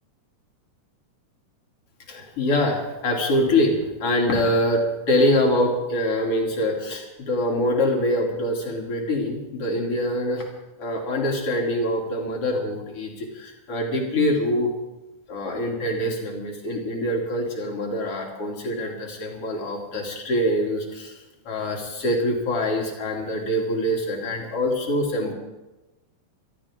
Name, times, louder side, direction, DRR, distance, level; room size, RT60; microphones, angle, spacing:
voice 1, 2.1-10.5 10.8-14.7 15.3-21.2 21.5-25.3, left 1 dB, 45° left, -1 dB, 3.8 m, -24 dB
25.5 x 13.5 x 3.8 m, 1.0 s
omnidirectional pair, 3.7 m